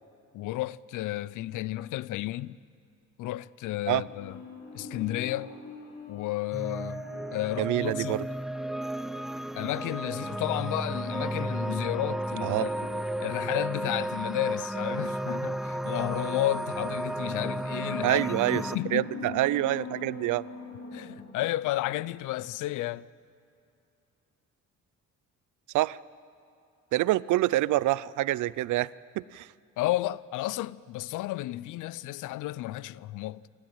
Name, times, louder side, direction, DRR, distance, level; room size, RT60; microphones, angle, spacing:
voice 1, 0.3-2.6 3.2-4.4 4.7-5.5 6.1-7.0 7.3-8.3 9.5-12.7 13.2-19.1 20.9-23.0 29.8-33.5, left 16 dB, 85° left, 0.5 m, -32 dB
sound 1, 4.0-9.7 10.8-13.8 16.6-21.8 22.1-22.2, left 3 dB, 60° left, 3.4 m, -44 dB
sound 2, 6.5-18.8, right 1 dB, ahead, 0.5 m, -33 dB
voice 2, 7.6-8.2 12.4-12.7 18.0-20.5 25.7-26.0 26.9-28.9 29.2-29.5, right 16 dB, 75° right, 0.5 m, -26 dB
27.0 x 12.5 x 8.9 m
cardioid pair, 90°, 30 cm